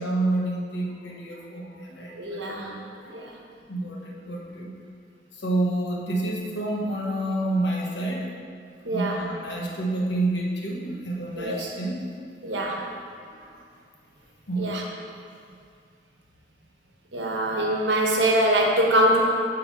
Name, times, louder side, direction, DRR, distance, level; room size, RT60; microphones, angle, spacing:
voice 1, 0.0-3.2 3.7-4.7 5.3-8.3 8.9-12.0 13.4-13.6 14.5-14.8, right 2 dB, 85° left, -2 dB, 1.3 m, -29 dB
voice 2, 2.2-2.7 3.1-3.3 8.8-9.2 11.4-11.7 12.4-12.8 14.6-14.8 17.1-19.2, right 1 dB, 90° right, -1 dB, 1.2 m, -23 dB
7.6 x 3.8 x 6.0 m, 2.2 s
head